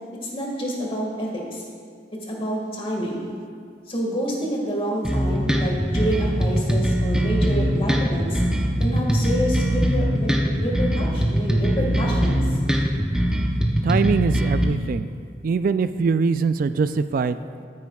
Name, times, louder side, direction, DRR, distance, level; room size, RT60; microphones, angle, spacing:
voice 1, 0.3-1.6 2.3-3.2 3.9-8.4 8.8-10.4 10.6-12.4, equal, 30° left, -2 dB, 1.8 m, -28 dB
sound 1, 5.0-14.6, equal, 5° right, 0.7 m, -21 dB
voice 2, 13.8-15.1 15.4-17.7, right 5 dB, 50° right, 13 dB, 0.3 m, -23 dB
13.5 x 9.6 x 2.3 m, 2.2 s
head